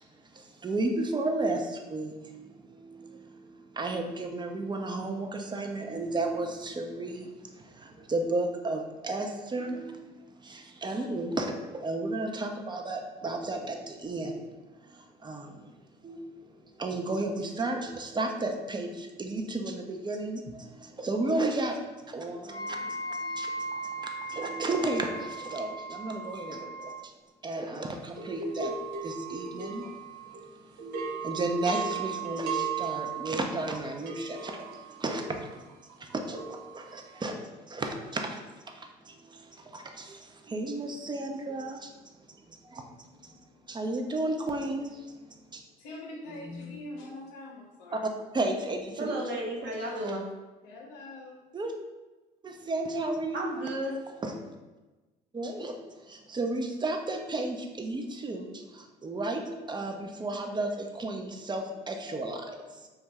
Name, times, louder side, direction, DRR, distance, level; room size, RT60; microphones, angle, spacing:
voice 1, 0.3-14.4 14.8-15.7 16.0-16.2 16.5-27.1 27.4-29.9 30.8-38.4 38.7-41.9 42.3-43.4 43.7-45.2 45.5-45.6 47.9-49.2 51.5-51.7 52.4-53.6 54.2-54.3 55.3-62.9, right 2 dB, 20° right, 3 dB, 0.4 m, -33 dB
Wind instrument woodwind instrument, 22.5-27.0, right 1 dB, 25° left, 0.8 m, -37 dB
sound 1, 28.2-30.5 30.8-37.1, right 6 dB, 90° right, 0.4 m, -37 dB
voice 2, 45.8-48.1 50.6-51.4, left 2 dB, 85° left, -1 dB, 0.7 m, -43 dB
voice 3, 49.0-50.2 53.3-53.9 62.1-62.6, right 1 dB, 55° right, -2 dB, 0.9 m, -34 dB
2.5 x 2.3 x 3.1 m, 1.2 s
hypercardioid pair, 65°, 21 cm